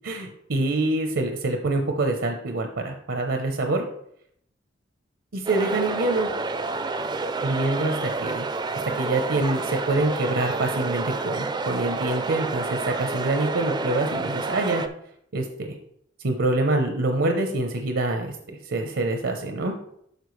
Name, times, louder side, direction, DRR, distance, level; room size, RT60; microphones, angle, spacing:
voice 1, 0.0-3.8 5.3-6.3 7.4-8.5 9.0-14.8 15.3-15.7 16.2-19.7, right 2 dB, 80° right, 4 dB, 0.8 m, -25 dB
sound 1, 5.5-14.9, right 3 dB, 20° right, 0.4 m, -29 dB
12.0 x 4.4 x 3.2 m, 0.71 s
head